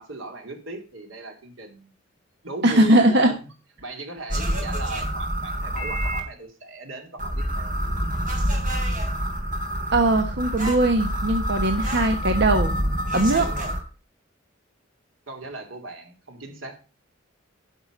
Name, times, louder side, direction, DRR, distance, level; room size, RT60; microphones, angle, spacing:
voice 1, 0.0-1.9 2.4-3.4 3.8-7.8 13.4-13.7 15.3-16.8, right 3 dB, 90° right, 2.8 m, -38 dB
voice 2, 2.6-3.3 9.9-12.7 13.1-13.5, right 1 dB, 60° right, 1.2 m, -20 dB
sound 1, 4.3-6.2 7.2-13.8, equal, 45° right, 4.0 m, -27 dB
11.0 x 5.8 x 6.5 m
head